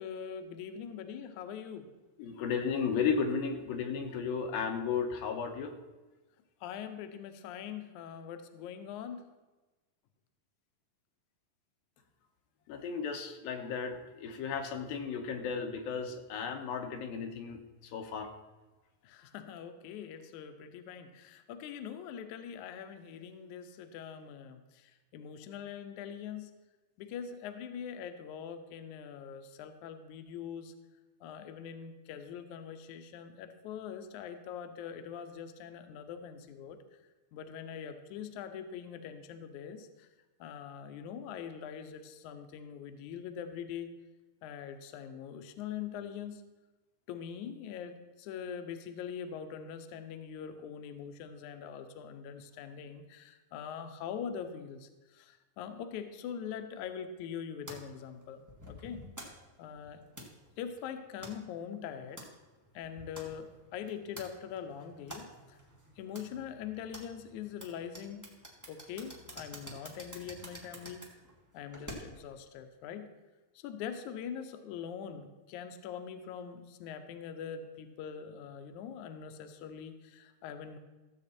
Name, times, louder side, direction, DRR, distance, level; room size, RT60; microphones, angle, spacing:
voice 1, 0.0-1.9 6.6-9.2 19.0-26.5 27.0-30.7 31.2-36.8 37.3-40.1 40.4-43.9 44.4-46.4 47.1-59.0 59.6-60.0 60.6-62.2 62.7-65.6 66.0-68.3 68.7-71.1 71.5-73.1 73.6-80.8, left 8 dB, 70° left, 7 dB, 2.0 m, -43 dB
voice 2, 2.2-5.7 12.7-18.3, left 6 dB, 85° left, 5 dB, 2.8 m, -34 dB
sound 1, 57.7-72.3, equal, 20° right, 0.5 m, -50 dB
15.0 x 7.6 x 4.3 m, 1.2 s
omnidirectional pair, 4.1 m